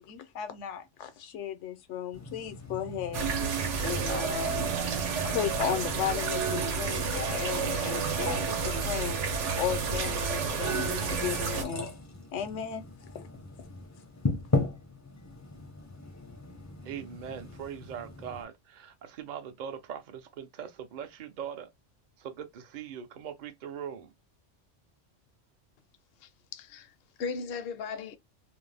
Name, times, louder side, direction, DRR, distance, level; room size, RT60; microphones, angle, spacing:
voice 1, 0.0-3.3 3.8-4.7 5.2-9.2 9.6-11.9 12.3-12.9 13.1-13.3 13.6-13.7, left 9 dB, 85° left, 0.9 m, -35 dB
sound 1, 2.1-18.4, left 2 dB, 25° left, 0.4 m, -38 dB
sound 2, 3.1-11.6, right 5 dB, 85° right, 1.0 m, -30 dB
voice 2, 16.8-21.7 22.2-24.1, right 8 dB, 55° right, 0.5 m, -41 dB
voice 3, 26.2-28.2, left 5 dB, 65° left, 0.7 m, -38 dB
2.5 x 2.0 x 3.2 m
omnidirectional pair, 1.2 m